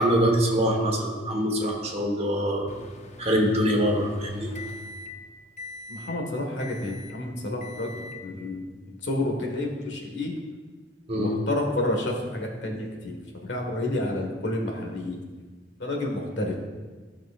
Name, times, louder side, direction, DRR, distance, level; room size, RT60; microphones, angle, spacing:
voice 1, 0.0-2.7 3.2-4.5 11.1-11.3, equal, 35° right, 0 dB, 1.3 m, -24 dB
Microwave oven, 2.7-5.2 5.6-6.1 6.6-7.2 7.6-8.2, left 3 dB, 40° left, 0.6 m, -43 dB
voice 2, 5.9-10.3 11.1-13.2 13.4-15.2 15.8-16.5, left 1 dB, 85° left, 1 dB, 1.6 m, -30 dB
14.5 x 6.1 x 2.5 m, 1.4 s
head